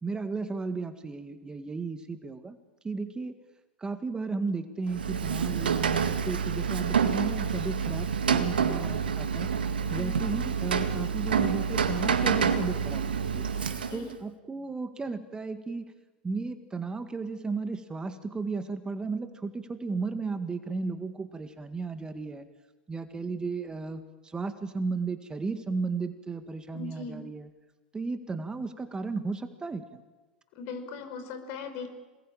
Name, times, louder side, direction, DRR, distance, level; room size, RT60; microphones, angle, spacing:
voice 1, 0.0-2.6 2.8-3.4 3.8-9.5 9.9-13.5 13.9-15.9 16.2-22.5 22.9-27.5 27.9-30.0, right 4 dB, 15° right, 9 dB, 1.9 m, -34 dB
Rain, 4.9-14.1, right 6 dB, 85° right, 2.0 m, -28 dB
voice 2, 9.9-10.2 13.5-14.1 26.7-27.2 30.5-31.9, left 4 dB, 55° left, 8 dB, 5.6 m, -39 dB
27.5 x 20.5 x 8.9 m, 1.2 s
hypercardioid pair, 95°, 5 cm